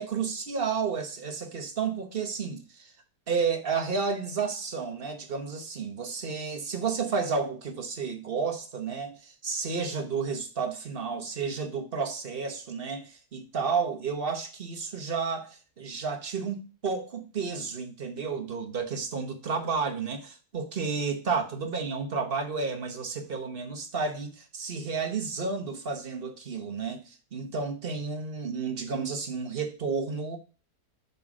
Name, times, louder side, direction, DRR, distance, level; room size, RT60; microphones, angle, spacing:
voice 1, 0.0-2.9 3.3-30.4, right 5 dB, 40° right, 1.1 m, -31 dB
5.5 x 3.8 x 6.0 m
omnidirectional pair, 1.6 m